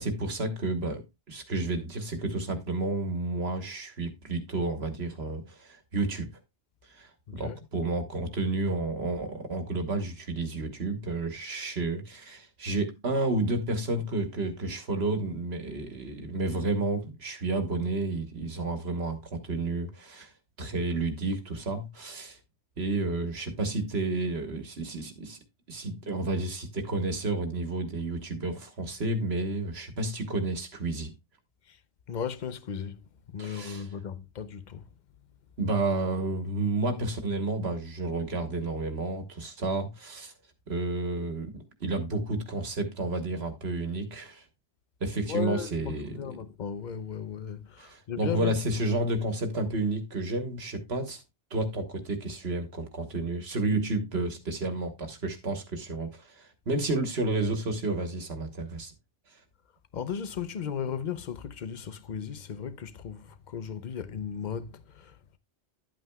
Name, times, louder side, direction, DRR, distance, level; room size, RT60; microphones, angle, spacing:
voice 1, 0.0-6.3 6.9-20.3 20.6-22.4 22.8-25.4 25.7-31.1 33.4-33.8 35.6-40.3 40.7-44.4 45.0-46.1 47.8-51.2 51.5-58.9, right 2 dB, 65° right, 1.5 m, -31 dB
voice 2, 7.3-7.6 31.7-31.8 32.1-34.9 45.3-48.8 59.9-65.4, left 8 dB, 45° left, 0.7 m, -36 dB
11.0 x 8.5 x 2.3 m
omnidirectional pair, 1.2 m